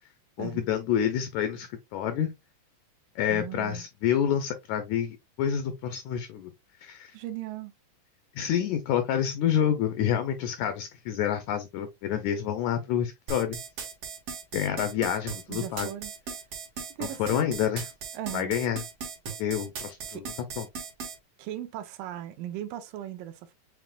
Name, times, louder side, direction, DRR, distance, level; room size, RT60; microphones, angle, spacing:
voice 1, 0.4-2.3 3.1-6.5 6.8-7.1 8.3-13.6 14.5-15.9 17.0-17.9 18.3-18.8 19.4-20.2 20.6-20.7, left 9 dB, 80° left, 1.7 m, -28 dB
voice 2, 3.3-3.8 7.1-7.7 15.5-16.1 17.0-17.6 18.1-18.6 20.1-20.3 21.4-23.5, right 12 dB, 80° right, 2.3 m, -38 dB
sound 1, 13.3-21.2, right 5 dB, 55° right, 2.1 m, -37 dB
7.1 x 3.2 x 2.3 m
omnidirectional pair, 4.0 m